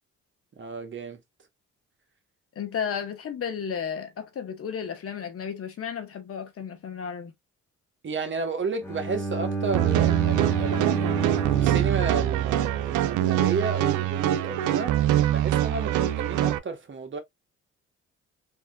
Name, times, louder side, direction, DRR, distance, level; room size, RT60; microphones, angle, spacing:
voice 1, 0.6-1.2 8.0-15.0 15.3-17.2, right 4 dB, 40° right, 1.0 m, -32 dB
voice 2, 2.6-7.3, left 7 dB, 50° left, 0.9 m, -33 dB
Bowed string instrument, 8.8-12.9, right 5 dB, 10° left, 1.0 m, -29 dB
sound 1, 9.7-16.6, right 13 dB, 85° right, 0.5 m, -24 dB
3.4 x 2.6 x 2.2 m
cardioid pair, 90°, 30 cm